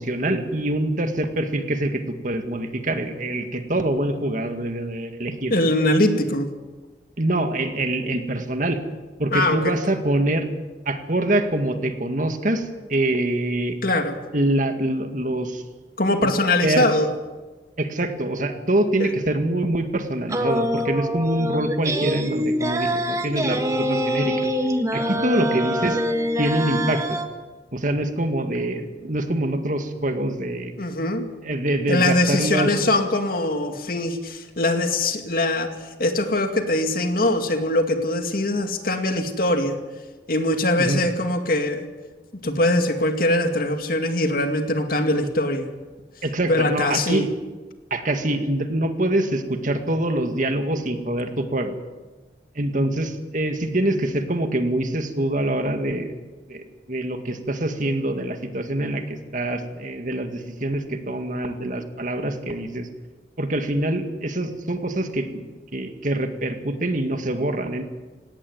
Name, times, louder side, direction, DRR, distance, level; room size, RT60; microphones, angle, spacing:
voice 1, 0.0-5.6 7.2-8.8 9.2-10.5 10.9-13.8 14.3-15.6 16.2-16.3 16.6-16.8 17.8-24.5 24.9-26.0 26.4-27.2 27.7-30.7 31.4-32.7 40.8-41.0 46.2-47.3 47.9-51.7 52.6-56.2 56.5-62.9 63.4-65.5 65.7-67.8, right 1 dB, 45° right, 7 dB, 2.0 m, -25 dB
voice 2, 5.5-6.5 9.3-9.8 13.8-14.2 16.0-17.1 19.0-19.1 30.8-31.3 31.9-35.7 36.0-39.8 40.3-41.8 42.4-45.7 46.5-47.3, left 1 dB, 55° left, 6 dB, 2.3 m, -22 dB
sound 1, 20.3-27.3, equal, 20° right, 1.6 m, -25 dB
18.5 x 17.5 x 9.5 m, 1.3 s
head